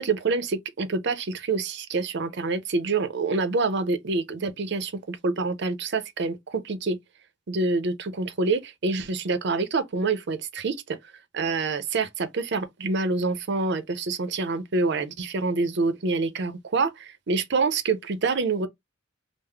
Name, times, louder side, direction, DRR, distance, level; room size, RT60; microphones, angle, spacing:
voice 1, 0.0-7.0 7.5-11.0 11.3-18.7, right 3 dB, 60° right, 0.6 m, -26 dB
3.5 x 2.0 x 3.3 m
head